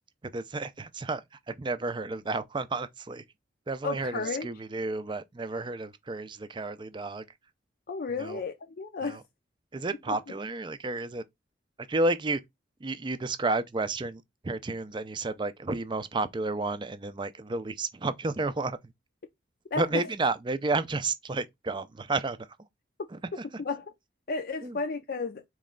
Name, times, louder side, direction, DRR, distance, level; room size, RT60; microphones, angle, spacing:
voice 1, 0.2-3.2 3.7-7.3 8.2-8.4 9.0-9.2 9.7-11.2 11.8-12.4 12.8-18.8 19.8-22.5 24.6-24.8, right 3 dB, 25° right, 0.4 m, -31 dB
voice 2, 3.8-4.5 7.9-9.2 10.1-10.2 19.7-20.1 23.3-23.9 24.3-25.4, left 4 dB, 55° left, 0.5 m, -33 dB
4.2 x 3.1 x 3.7 m
head